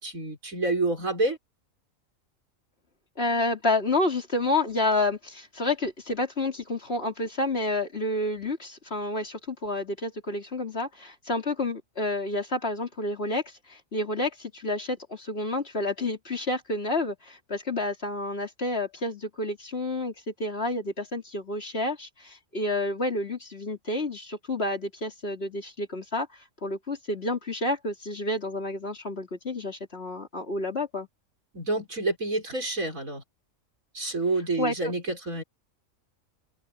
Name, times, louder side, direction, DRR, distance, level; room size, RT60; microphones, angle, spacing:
voice 1, 0.0-1.4 31.5-33.2 33.9-35.4, right 2 dB, 90° right, 6.7 m, -28 dB
voice 2, 3.2-31.1 34.6-34.9, left 2 dB, 50° left, 3.6 m, -29 dB
open air
omnidirectional pair, 1.4 m